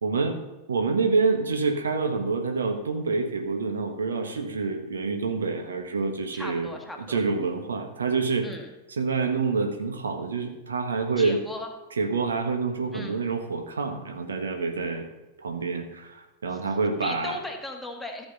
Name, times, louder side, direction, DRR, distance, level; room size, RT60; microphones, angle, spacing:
voice 1, 0.0-0.4 0.7-6.7 7.1-8.5 9.0-11.4 12.0-15.1 15.4-17.4, right 4 dB, 70° right, 5 dB, 1.5 m, -27 dB
voice 2, 6.3-7.2 8.4-8.7 11.2-11.7 12.9-13.2 16.5-16.6 17.0-18.3, left 2 dB, 5° left, 1 dB, 1.9 m, -37 dB
14.5 x 7.0 x 5.5 m, 1.1 s
figure-of-eight pair, 90°, 0 cm